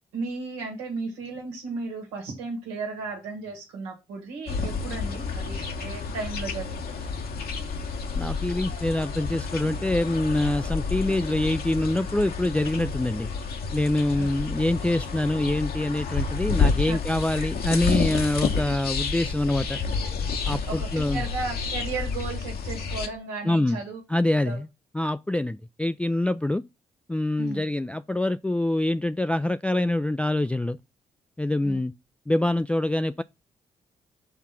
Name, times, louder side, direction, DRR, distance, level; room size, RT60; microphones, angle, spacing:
voice 1, 0.1-6.9 14.2-14.3 16.9-17.0 20.7-24.0 24.4-24.6 27.4-27.6 31.6-31.8, right 4 dB, 90° right, 1.6 m, -35 dB
sound 1, 4.5-23.1, left 5 dB, 65° left, 1.1 m, -30 dB
voice 2, 8.1-13.3 13.7-19.8 20.5-21.2 23.4-23.8 24.1-24.7 24.9-26.6 27.1-30.8 31.4-31.9 32.3-33.2, left 1 dB, 5° left, 0.3 m, -25 dB
5.8 x 3.6 x 5.7 m
hypercardioid pair, 40°, 17 cm